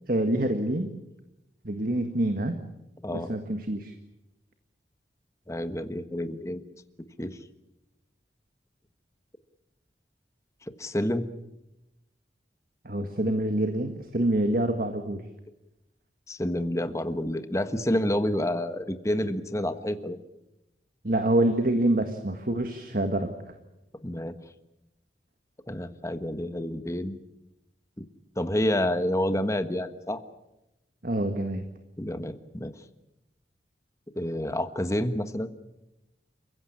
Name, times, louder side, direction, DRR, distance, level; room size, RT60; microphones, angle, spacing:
voice 1, 0.1-0.9 1.6-2.6 3.1-3.9 12.8-15.2 21.0-23.6 31.0-31.7, right 1 dB, 50° right, 7 dB, 1.7 m, -26 dB
voice 2, 3.0-3.3 5.5-6.6 7.2-7.4 10.8-11.3 16.3-20.2 24.0-24.4 25.7-27.1 28.0-28.1 28.4-30.2 32.0-32.7 34.1-35.5, left 1 dB, 15° left, 10 dB, 1.3 m, -29 dB
29.5 x 16.0 x 8.7 m, 0.93 s
head